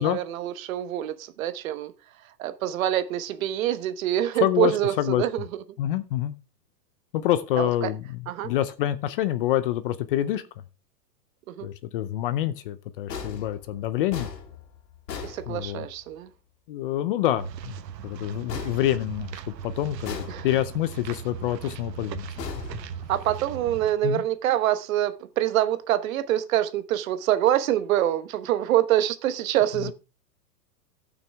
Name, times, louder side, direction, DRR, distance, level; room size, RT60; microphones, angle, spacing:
voice 1, 0.0-1.9 2.4-5.5 7.6-7.9 8.3-8.5 11.5-11.7 15.2-16.3 20.3-20.5 23.1-29.9, right 12 dB, 55° right, 1.1 m, -25 dB
voice 2, 4.4-4.7 5.0-5.2 5.8-6.3 7.1-8.2 8.4-10.4 11.6-14.3 15.5-15.9 16.7-17.8 18.0-19.3 19.6-22.3 24.0-24.2, left 13 dB, 35° left, 0.6 m, -26 dB
sound 1, 13.1-16.1 18.5-19.6 20.0-20.9 22.4-23.5, left 6 dB, 80° left, 2.7 m, -39 dB
sound 2, 17.4-23.9, right 8 dB, 85° right, 1.2 m, -38 dB
16.0 x 6.2 x 3.4 m
hypercardioid pair, 150°, 49 cm